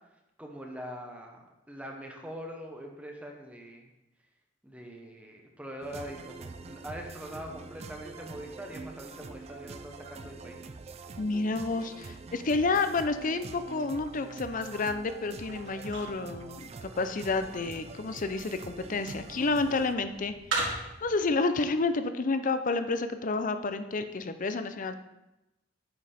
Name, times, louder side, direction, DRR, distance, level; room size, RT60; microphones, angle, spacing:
voice 1, 0.4-3.9 4.6-10.6, equal, 5° right, 1 dB, 0.9 m, -43 dB
sound 1, 5.8-19.9, right 4 dB, 35° right, 0.4 m, -45 dB
voice 2, 11.2-20.3 21.0-24.9, left 3 dB, 45° left, 10 dB, 0.5 m, -30 dB
sound 2, 14.3-21.2, right 2 dB, 65° right, 2.9 m, -40 dB
8.8 x 5.2 x 4.3 m, 0.96 s
head